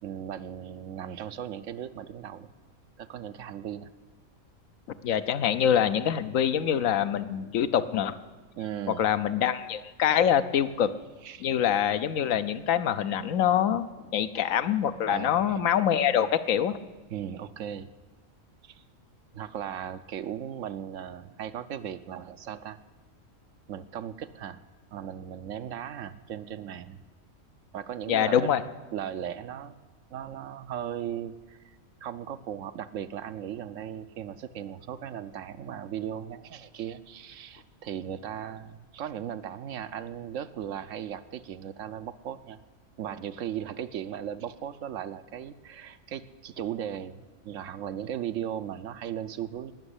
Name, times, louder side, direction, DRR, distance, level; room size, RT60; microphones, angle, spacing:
voice 1, 0.0-2.5 3.0-3.9 8.6-9.0 11.2-11.5 15.1-15.6 17.1-17.9 18.6-18.8 19.3-22.8 23.7-24.6 24.9-27.0 27.7-28.5 28.9-29.7 30.1-31.8 32.0-42.6 43.0-49.7, right 9 dB, 70° right, 12 dB, 1.0 m, -37 dB
voice 2, 5.0-8.2 9.0-10.9 11.4-13.9 14.1-16.8 28.1-28.6, left 9 dB, 75° left, 12 dB, 1.1 m, -25 dB
18.5 x 6.3 x 9.7 m, 1.3 s
omnidirectional pair, 1.4 m